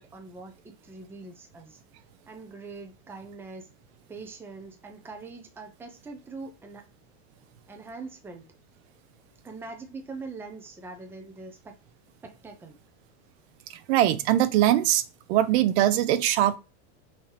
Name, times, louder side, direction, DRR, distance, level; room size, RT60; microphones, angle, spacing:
voice 1, 0.0-1.8 2.3-3.7 4.1-6.9 7.7-8.4 9.4-11.8 12.2-12.8, right 3 dB, 5° right, 0.6 m, -42 dB
voice 2, 13.9-15.0 15.3-16.6, right 12 dB, 60° right, 0.6 m, -21 dB
5.7 x 2.9 x 3.3 m
supercardioid pair, 150°, 36 cm